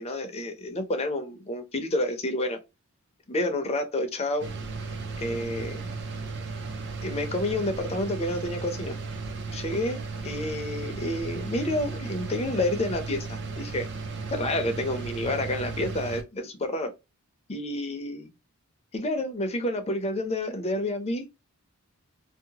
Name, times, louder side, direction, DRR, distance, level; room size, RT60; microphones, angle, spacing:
voice 1, 0.0-2.6 3.3-4.5 5.2-5.9 7.0-9.0 9.5-13.9 14.3-16.9 17.5-18.3 18.9-21.3, left 1 dB, 30° left, 0.5 m, -29 dB
sound 1, 4.4-16.2, right 4 dB, 50° right, 0.5 m, -35 dB
2.7 x 2.0 x 2.8 m
head